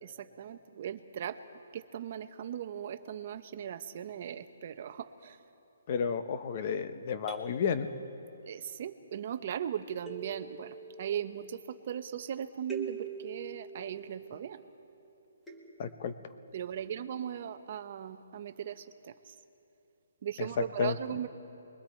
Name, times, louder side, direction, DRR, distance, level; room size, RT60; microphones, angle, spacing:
voice 1, 0.0-1.4 1.7-5.4 8.4-14.6 16.5-19.3 20.2-21.3, right 9 dB, 35° right, 11 dB, 0.8 m, -38 dB
voice 2, 5.9-7.9 15.8-16.1 20.4-21.0, left 6 dB, 30° left, 10 dB, 0.9 m, -31 dB
sound 1, 7.3-8.8 10.1-12.1 12.7-14.9 15.5-16.8, right 5 dB, 5° left, 1.4 m, -46 dB
28.5 x 22.0 x 4.4 m, 2.9 s
hypercardioid pair, 170°, 0 cm